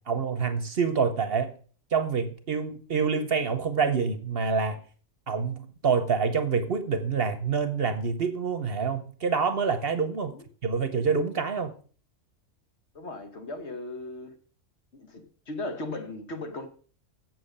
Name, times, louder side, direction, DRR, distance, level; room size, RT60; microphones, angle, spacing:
voice 1, 0.1-1.5 1.9-4.8 5.3-10.3 10.6-11.7, right 5 dB, 50° right, 1.0 m, -27 dB
voice 2, 12.9-14.3 14.9-16.7, left 2 dB, 55° left, 1.5 m, -37 dB
7.7 x 7.5 x 6.5 m
omnidirectional pair, 1.4 m